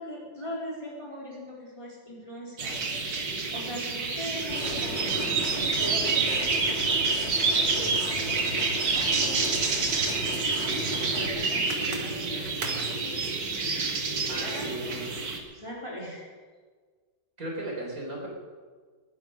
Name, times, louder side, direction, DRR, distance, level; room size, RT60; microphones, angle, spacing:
voice 1, 0.0-9.9 11.1-13.3 14.4-15.1 15.5-16.3, equal, 15° left, -4 dB, 3.9 m, -40 dB
sound 1, 2.6-15.4, right 4 dB, 80° right, 2.6 m, -28 dB
sound 2, 4.5-11.3, left 1 dB, 40° left, 2.1 m, -36 dB
voice 2, 14.3-15.1 17.4-18.3, right 1 dB, 50° right, -1 dB, 4.6 m, -36 dB
20.5 x 10.5 x 6.6 m, 1.5 s
omnidirectional pair, 1.9 m